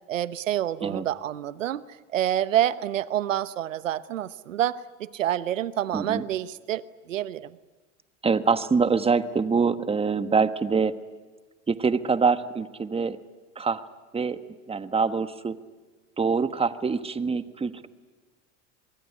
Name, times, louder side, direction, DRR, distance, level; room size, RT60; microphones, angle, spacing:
voice 1, 0.1-7.6, right 12 dB, 85° right, 16 dB, 1.0 m, -28 dB
voice 2, 5.9-6.2 8.2-10.9 11.7-13.2 13.6-13.8 14.1-14.4 14.7-15.5 16.2-17.9, right 5 dB, 15° right, 12 dB, 1.3 m, -24 dB
25.5 x 22.0 x 9.8 m, 1.3 s
hypercardioid pair, 95°, 38 cm